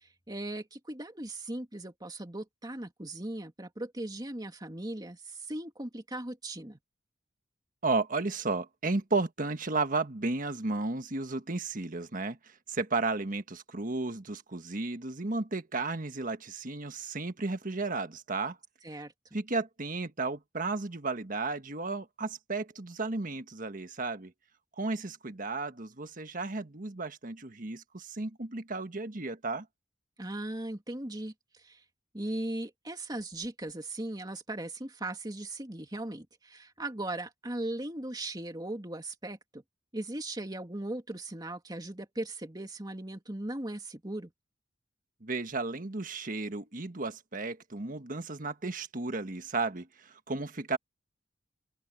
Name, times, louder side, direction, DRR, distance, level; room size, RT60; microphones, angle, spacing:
voice 1, 0.0-6.8 18.8-19.1 30.2-31.8 32.1-39.6 39.9-44.3, right 1 dB, 20° right, 2.5 m, -38 dB
voice 2, 7.8-18.6 18.9-19.0 19.3-24.3 24.8-29.7 45.2-50.8, right 3 dB, 45° right, 1.5 m, -33 dB
open air
head